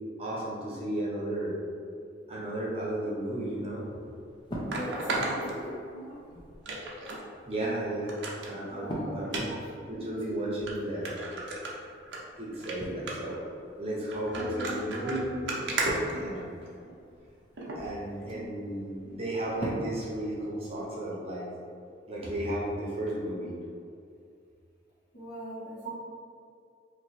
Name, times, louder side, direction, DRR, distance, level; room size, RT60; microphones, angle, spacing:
voice 1, 0.2-1.5 2.3-3.9 5.4-5.5 5.9-6.1 7.5-8.1 8.4-9.6 9.9-11.1 12.4-13.4 13.8-15.5 16.1-16.5 17.8-21.5 22.1-23.5 25.8-25.9, right 1 dB, 30° right, -6 dB, 0.8 m, -34 dB
sound 1, 3.1-21.1, equal, 25° left, 0.6 m, -45 dB
sound 2, 3.6-3.7 4.7-6.1 6.6-7.2 7.6-7.7 8.1-8.5 9.2-9.4 10.2-10.3 10.7-10.8 11.0-12.2 12.5-12.7 13.1-13.4 14.1-16.8 17.6-17.8 18.3-18.4, right 2 dB, 75° right, 0.7 m, -34 dB
voice 2, 4.6-5.7 8.7-9.7 14.4-14.8 16.1-16.3 18.3-18.5 25.1-25.9, equal, 60° left, -8 dB, 1.3 m, -40 dB
3.0 x 2.9 x 4.1 m, 2.4 s
head